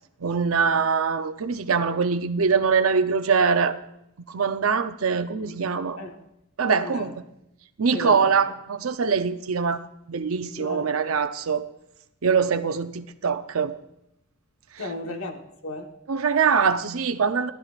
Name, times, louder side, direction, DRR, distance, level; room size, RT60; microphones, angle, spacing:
voice 1, 0.2-3.8 4.3-6.0 6.6-7.2 7.8-11.6 12.2-13.8 16.1-17.5, right 5 dB, 85° right, 0.7 m, -23 dB
voice 2, 6.6-7.1 7.9-8.4 10.5-10.9 14.8-15.9, left 2 dB, 85° left, 1.3 m, -34 dB
18.0 x 12.0 x 2.4 m
head